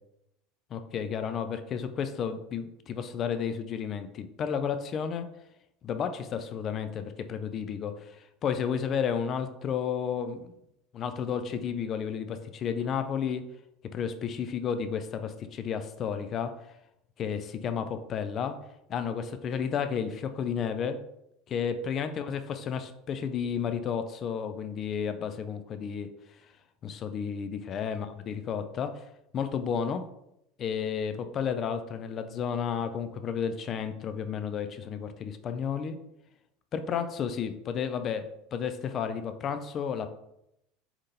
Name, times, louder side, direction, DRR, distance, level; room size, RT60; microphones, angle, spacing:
voice 1, 0.7-5.3 5.8-8.2 8.4-10.5 10.9-13.4 13.9-16.6 17.2-18.6 18.9-21.0 21.5-26.1 26.8-29.0 29.3-30.1 30.6-36.0 36.7-40.1, left 7 dB, 40° left, 10 dB, 0.4 m, -32 dB
4.2 x 3.6 x 2.7 m, 0.81 s
figure-of-eight pair, 70°, 0 cm